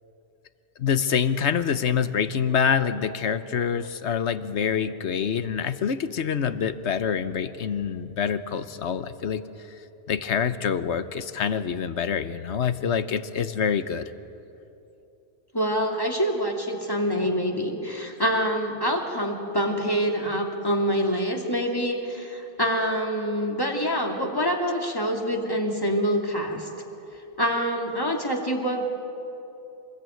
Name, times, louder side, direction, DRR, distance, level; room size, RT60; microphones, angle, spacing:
voice 1, 0.8-9.4 10.1-14.1, left 7 dB, 85° left, 12 dB, 1.2 m, -26 dB
voice 2, 15.5-26.7 27.4-28.8, equal, 20° left, 1 dB, 2.8 m, -26 dB
26.5 x 20.5 x 9.2 m, 2.9 s
omnidirectional pair, 1.1 m